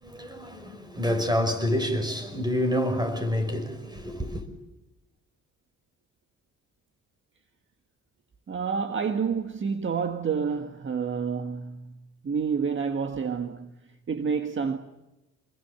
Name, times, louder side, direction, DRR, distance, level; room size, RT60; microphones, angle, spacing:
voice 1, 0.0-4.4, left 1 dB, 15° right, 5.9 m, -28 dB
voice 2, 8.5-11.9 12.2-13.7 14.1-14.8, right 6 dB, 40° right, 1.7 m, -28 dB
28.0 x 22.0 x 7.1 m
cardioid pair, 90°, 30 cm